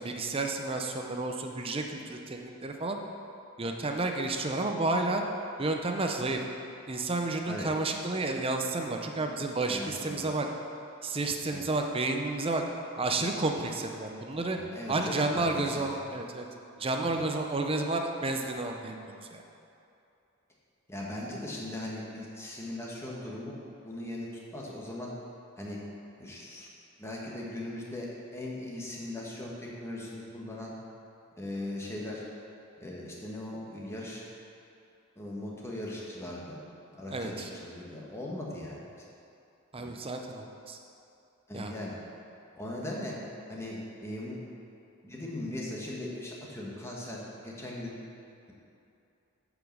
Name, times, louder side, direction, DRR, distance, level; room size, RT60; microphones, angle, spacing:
voice 1, 0.0-3.0 3.6-5.2 5.6-6.4 6.9-10.5 11.0-12.6 13.0-14.6 14.9-16.5 16.8-19.0 19.3-19.4 37.1-37.5 39.7-40.8 41.5-41.7, right 2 dB, 25° right, 3 dB, 0.6 m, -31 dB
voice 2, 9.7-10.3 11.5-11.7 14.5-15.8 17.0-17.1 20.9-23.6 23.8-25.1 25.6-25.8 26.2-26.7 27.0-30.7 31.4-32.2 32.8-34.2 35.2-36.6 36.9-38.8 39.8-39.9 41.5-41.9 42.6-43.1 43.5-44.4 45.0-48.0, left 1 dB, 15° left, -4 dB, 1.3 m, -39 dB
8.4 x 5.1 x 6.4 m, 2.7 s
head